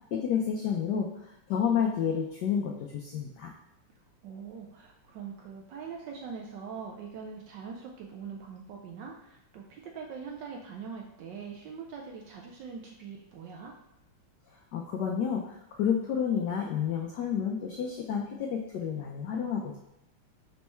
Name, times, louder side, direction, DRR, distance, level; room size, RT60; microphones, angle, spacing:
voice 1, 0.1-1.1 1.5-3.5 14.7-19.8, left 7 dB, 85° left, 1 dB, 0.9 m, -30 dB
voice 2, 4.2-13.7, right 6 dB, 75° right, 1 dB, 1.0 m, -42 dB
5.2 x 3.3 x 3.1 m, 0.88 s
omnidirectional pair, 2.4 m